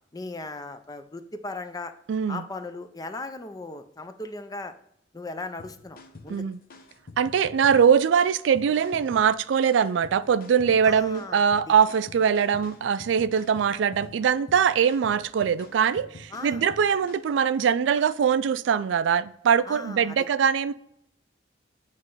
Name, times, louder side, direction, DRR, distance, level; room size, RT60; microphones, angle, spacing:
voice 1, 0.1-1.9 2.3-4.7 5.1-6.5 10.8-11.7 16.3-17.0 19.7-20.2, left 2 dB, 20° left, 0.5 m, -38 dB
voice 2, 2.1-2.4 6.3-6.6 7.2-20.7, right 7 dB, 75° right, 0.3 m, -22 dB
sound 1, 5.6-17.4, left 3 dB, 50° left, 0.8 m, -47 dB
8.2 x 3.2 x 5.4 m
head